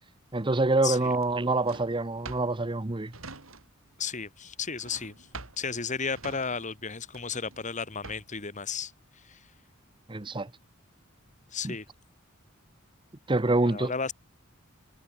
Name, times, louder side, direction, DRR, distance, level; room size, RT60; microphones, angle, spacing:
voice 1, 0.3-3.1 10.1-10.5 11.6-11.8 13.3-13.9, right 2 dB, 25° right, 0.9 m, -26 dB
Drawer open or close, 0.8-4.0 4.2-8.5, right 3 dB, 85° right, 4.5 m, -47 dB
voice 2, 4.0-5.3 5.6-9.4 11.5-11.8 13.6-14.1, left 5 dB, 35° left, 2.1 m, -34 dB
head